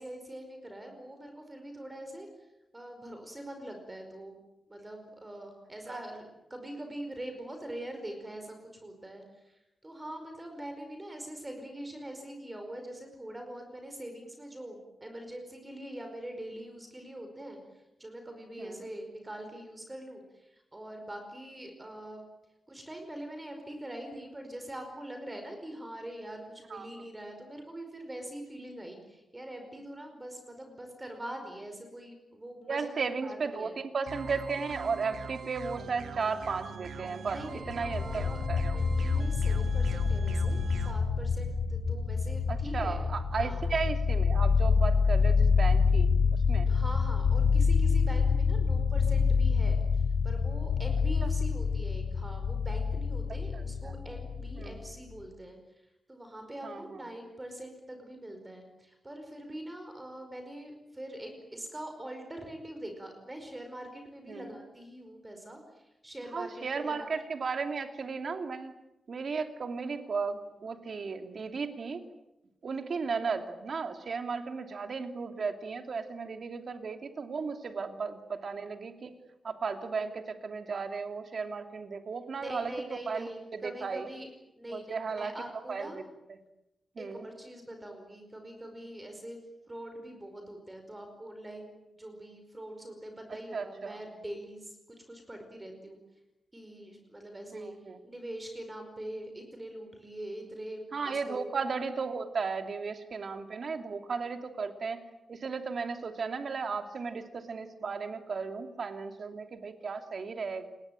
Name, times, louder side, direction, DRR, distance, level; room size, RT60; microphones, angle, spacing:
voice 1, 0.0-2.3 2.7-4.4 4.7-6.2 6.5-22.2 22.7-33.7 37.3-38.4 38.7-43.0 43.4-43.6 46.7-55.6 56.1-67.1 82.4-84.3 84.6-86.0 87.0-89.4 89.7-96.0 96.5-97.7 98.0-101.5, right 1 dB, 15° right, 5 dB, 5.0 m, -43 dB
voice 2, 32.7-37.4 37.7-38.8 42.5-46.1 46.5-46.7 51.2-51.3 53.5-54.0 54.6-54.8 56.6-57.1 64.3-64.5 66.3-68.7 69.1-72.0 72.6-79.1 79.4-82.7 83.1-84.1 84.7-85.3 85.7-86.0 87.0-87.3 93.5-94.0 97.6-98.0 100.9-105.0 105.3-110.7, right 5 dB, 50° right, 6 dB, 2.8 m, -35 dB
sound 1, 34.1-40.9, right 5 dB, 90° right, 2.3 m, -43 dB
sound 2, 37.5-54.9, left 5 dB, 80° left, 2.8 m, -27 dB
29.0 x 21.5 x 9.1 m, 0.90 s
wide cardioid pair, 170°, 0 cm